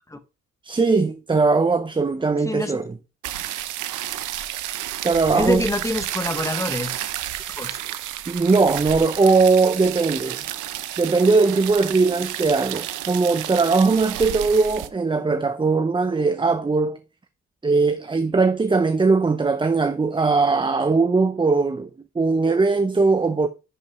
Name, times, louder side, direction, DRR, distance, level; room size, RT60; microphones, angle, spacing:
voice 1, 0.6-3.0 5.0-5.7 8.3-10.4 11.0-17.0 17.6-23.5, right 4 dB, 15° right, 0.6 m, -20 dB
voice 2, 2.4-2.8 3.3-3.5 5.3-7.0 7.5-7.8, left 1 dB, 10° left, 1.1 m, -26 dB
sound 1, 3.2-14.9, right 13 dB, 85° right, 0.8 m, -31 dB
10.5 x 5.2 x 3.1 m
cardioid pair, 90°, 30 cm